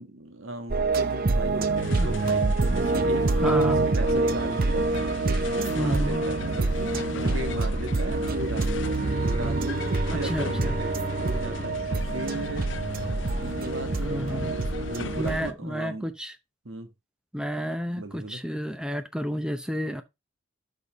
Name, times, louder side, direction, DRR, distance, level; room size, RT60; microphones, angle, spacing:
voice 1, 0.0-3.4 3.7-6.9 7.2-10.9 11.2-12.7 13.4-16.1 16.6-16.9 18.0-18.4, right 2 dB, 85° right, 1.4 m, -37 dB
sound 1, 0.7-15.4, right 3 dB, 45° right, 0.6 m, -26 dB
sound 2, 1.8-15.5, left 4 dB, 70° left, 0.6 m, -38 dB
voice 2, 3.4-3.8 5.8-6.2 10.1-10.8 14.0-14.6 15.2-16.4 17.3-20.0, equal, 5° right, 0.6 m, -31 dB
Bowed string instrument, 9.0-12.9, right 2 dB, 30° right, 1.3 m, -35 dB
12.5 x 5.5 x 3.0 m
head